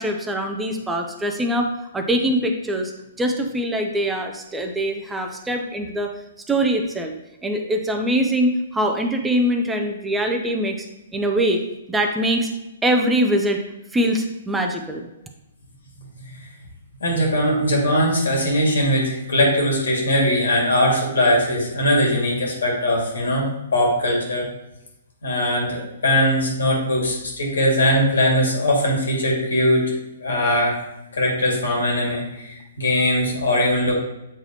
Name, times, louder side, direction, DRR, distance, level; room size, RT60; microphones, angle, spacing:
voice 1, 0.0-2.9 3.2-6.1 6.5-7.1 7.4-10.9 11.1-11.6 11.9-12.5 12.8-13.6 13.9-15.1 32.1-32.2, right 1 dB, 10° right, 4 dB, 0.6 m, -23 dB
voice 2, 17.0-24.5 25.2-29.9 30.2-30.8 31.1-33.9, left 1 dB, 80° left, -1 dB, 2.2 m, -20 dB
8.1 x 3.9 x 2.9 m, 0.93 s
hypercardioid pair, 130°, 0 cm